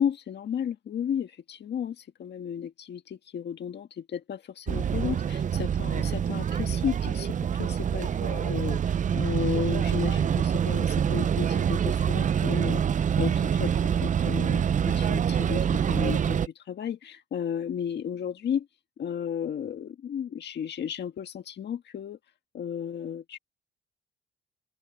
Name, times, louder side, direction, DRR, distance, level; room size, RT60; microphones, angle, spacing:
voice 1, 0.0-12.8 13.2-18.7 19.0-22.2 22.5-23.4, left 8 dB, 60° left, 1.7 m, -33 dB
sound 1, 4.7-16.5, right 8 dB, 40° right, 0.6 m, -26 dB
open air
cardioid pair, 90°, 20 cm